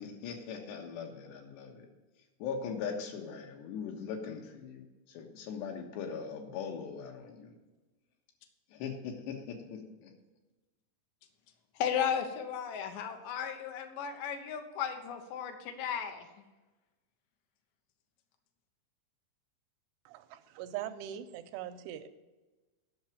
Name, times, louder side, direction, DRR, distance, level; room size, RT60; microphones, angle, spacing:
voice 1, 0.0-1.9 2.4-7.6 8.7-10.1, left 6 dB, 85° left, 2 dB, 3.5 m, -40 dB
voice 2, 11.8-16.3, left 8 dB, 70° left, 5 dB, 2.3 m, -35 dB
voice 3, 20.1-22.1, right 11 dB, 85° right, 8 dB, 2.6 m, -41 dB
10.5 x 6.1 x 7.1 m, 1.2 s
omnidirectional pair, 4.8 m